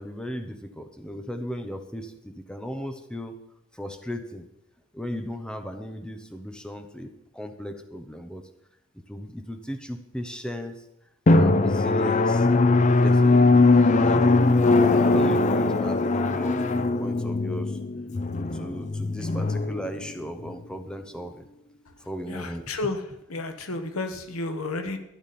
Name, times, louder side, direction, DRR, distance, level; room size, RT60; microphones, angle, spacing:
voice 1, 0.0-3.4 3.7-4.5 4.9-8.5 9.1-10.8 11.3-12.5 13.0-17.8 18.5-21.5 22.0-22.7, equal, 5° left, 6 dB, 0.9 m, -36 dB
Drum, 11.3-20.5, left 3 dB, 35° left, 0.5 m, -20 dB
voice 2, 22.3-23.0 23.3-25.0, left 2 dB, 85° left, 7 dB, 1.2 m, -31 dB
12.5 x 11.5 x 4.3 m, 0.84 s
head